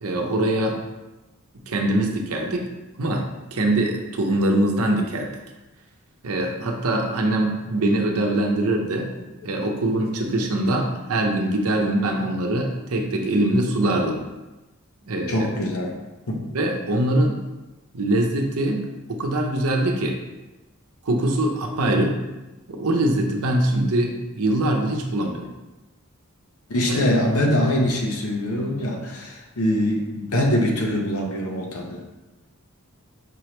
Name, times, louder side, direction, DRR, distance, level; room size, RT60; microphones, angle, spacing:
voice 1, 0.0-0.8 1.7-2.6 3.0-5.3 6.2-9.1 9.4-14.2 15.0-15.5 16.5-17.4 17.9-20.2 21.0-22.2 22.7-25.5 26.9-27.0, right 1 dB, 80° right, 2 dB, 0.7 m, -23 dB
voice 2, 15.3-16.0 16.3-16.5 26.7-32.0, left 1 dB, 75° left, 1 dB, 0.8 m, -23 dB
5.3 x 2.9 x 3.2 m, 1.1 s
head